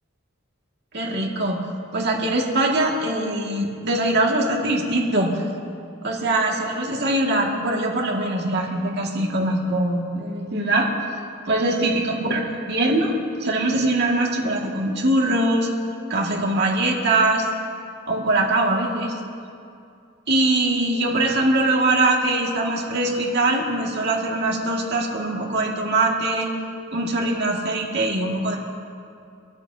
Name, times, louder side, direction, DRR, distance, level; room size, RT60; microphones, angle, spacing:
voice 1, 0.9-1.7 1.9-5.4 6.0-10.9 11.5-12.4 12.6-13.1 13.4-15.7 16.1-17.5 18.1-19.2 20.3-26.5 26.9-28.6, right 2 dB, 50° right, -1 dB, 2.2 m, -22 dB
26.0 x 14.0 x 2.8 m, 2.4 s
head